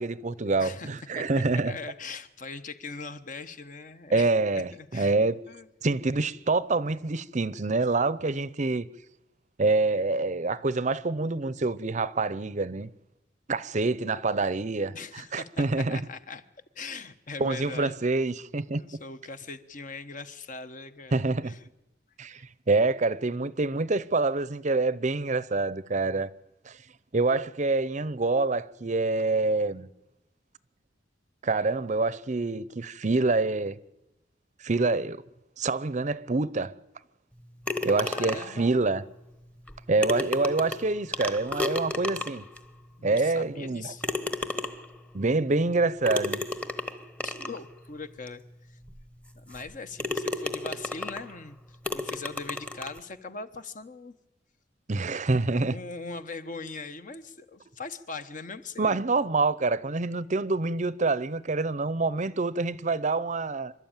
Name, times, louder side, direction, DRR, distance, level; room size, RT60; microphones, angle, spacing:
voice 1, 0.0-1.7 4.1-5.4 5.8-8.9 9.6-12.9 13.5-16.0 17.4-18.8 21.1-21.5 22.2-22.4 22.7-26.3 26.7-26.8 27.1-29.9 31.4-33.8 34.6-35.2 35.6-36.7 37.8-39.0 39.9-42.4 43.0-43.9 45.1-46.4 54.9-55.8 58.8-63.7, right 3 dB, 40° right, 0.7 m, -26 dB
voice 2, 0.6-0.9 1.1-1.3 1.6-4.3 4.5-5.2 5.5-5.7 14.9-16.4 16.7-18.0 18.7-21.6 22.3-22.4 37.8-38.7 43.0-44.0 47.2-48.8 49.3-54.1 55.5-59.0, left 4 dB, 45° left, 1.1 m, -41 dB
sound 1, 37.7-38.6 39.7-39.8 40.0-42.6 43.2-43.3 44.0-45.0 46.1-47.6 48.3-48.4 48.9-49.0 49.5-49.7 50.0-51.3 51.8-53.0, left 2 dB, 5° left, 1.1 m, -32 dB
27.5 x 12.5 x 9.0 m
head